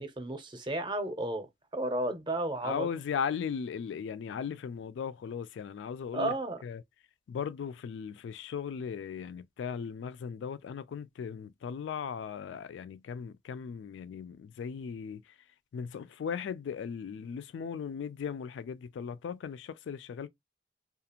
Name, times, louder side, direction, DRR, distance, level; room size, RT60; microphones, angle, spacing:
voice 1, 0.0-2.9 6.1-6.6, right 1 dB, 25° right, 0.6 m, -33 dB
voice 2, 2.6-6.3 6.6-6.8 7.3-15.4 15.7-20.3, left 7 dB, 85° left, 0.3 m, -37 dB
2.4 x 2.4 x 2.8 m
head